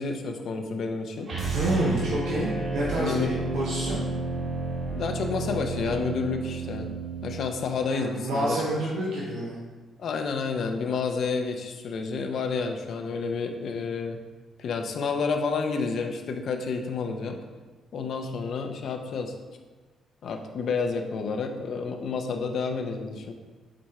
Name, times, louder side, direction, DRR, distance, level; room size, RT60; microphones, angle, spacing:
voice 1, 0.0-1.3 3.0-3.4 4.9-6.9 7.2-8.8 10.0-14.2 14.6-17.4 17.9-19.3 20.2-23.3, left 4 dB, 65° left, 4 dB, 0.8 m, -30 dB
sound 1, 1.3-7.4, right 3 dB, 55° right, 2.1 m, -31 dB
voice 2, 1.5-4.0 7.8-9.6, right 1 dB, 85° right, -5 dB, 1.2 m, -28 dB
7.6 x 3.5 x 4.4 m, 1.3 s
cardioid pair, 90°, 0 cm